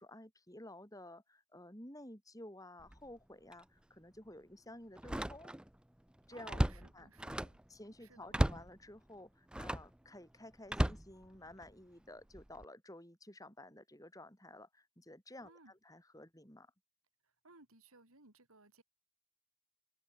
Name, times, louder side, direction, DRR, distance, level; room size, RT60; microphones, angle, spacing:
voice 1, 0.0-5.5 6.3-7.1 7.7-16.7, left 1 dB, 15° left, 6.7 m, -53 dB
Slam, 2.8-3.1 3.5-3.6 5.0-5.8 6.1-7.7 8.3-8.7 9.5-9.9 10.7-11.7 12.3-12.6, right 1 dB, 5° right, 0.3 m, -35 dB
voice 2, 6.3-7.6 8.0-8.6 15.4-15.7 17.2-18.8, right 3 dB, 85° right, 4.7 m, -61 dB
open air
head